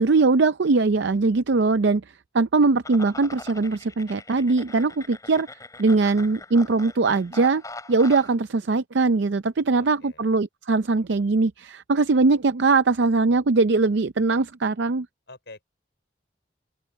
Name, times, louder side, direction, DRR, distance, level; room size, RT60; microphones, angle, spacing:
voice 1, 0.0-2.0 2.3-5.5 5.8-7.6 7.9-15.1, right 3 dB, 75° right, 0.5 m, -21 dB
sound 1, 2.8-8.4, left 3 dB, 20° left, 6.2 m, -42 dB
voice 2, 9.7-10.3 15.3-15.6, left 2 dB, 70° left, 4.1 m, -46 dB
open air
head